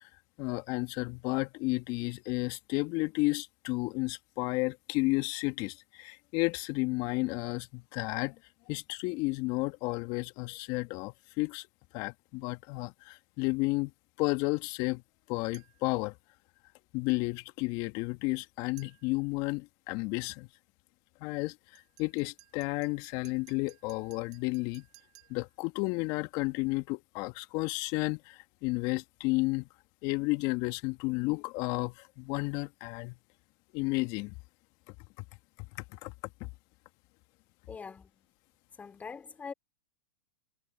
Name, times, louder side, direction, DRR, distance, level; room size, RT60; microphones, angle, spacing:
voice 1, 0.4-8.4 8.7-11.7 11.9-13.9 14.2-15.0 15.3-16.2 16.9-20.5 21.2-24.9 25.3-29.7 30.0-33.2 33.7-34.3 36.0-36.1 36.4-36.5, left 24 dB, 45° left, 2.1 m, -32 dB
sound 1, 15.5-16.0 18.8-19.3 21.7-25.6, right 19 dB, 40° right, 7.4 m, -60 dB
voice 2, 37.7-38.3 38.7-39.5, left 5 dB, 15° left, 3.9 m, -43 dB
hypercardioid pair, 115°, 10 cm